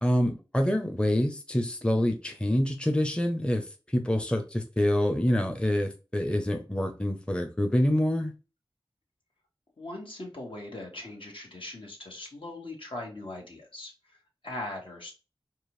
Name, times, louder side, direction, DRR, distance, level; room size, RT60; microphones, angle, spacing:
voice 1, 0.0-3.7 3.9-8.3, left 1 dB, 10° left, 0.7 m, -26 dB
voice 2, 9.8-15.1, left 2 dB, 70° left, 1.6 m, -40 dB
4.6 x 2.6 x 3.1 m
wide cardioid pair, 55°, 9 cm